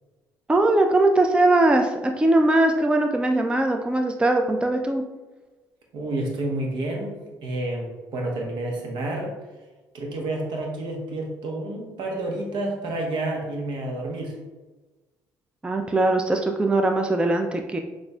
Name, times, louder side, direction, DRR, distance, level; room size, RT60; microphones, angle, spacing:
voice 1, 0.5-5.0 15.6-17.8, right 2 dB, 10° right, 4 dB, 0.4 m, -20 dB
voice 2, 5.9-9.3 9.9-14.3, right 2 dB, 70° right, 0 dB, 1.0 m, -29 dB
6.1 x 2.5 x 2.3 m, 1.2 s
supercardioid pair, 75°, 8 cm